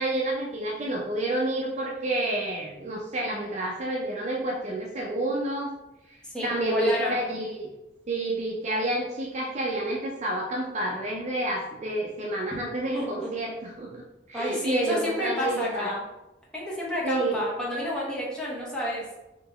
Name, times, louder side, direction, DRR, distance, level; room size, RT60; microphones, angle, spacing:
voice 1, 0.0-5.7 6.4-7.7 8.1-14.0 14.3-15.9 17.0-17.4, right 1 dB, 40° right, -2 dB, 0.5 m, -29 dB
voice 2, 6.2-7.2 12.9-13.3 14.3-16.0 16.5-19.0, equal, 5° left, -6 dB, 1.0 m, -30 dB
3.7 x 2.8 x 3.4 m, 0.98 s
head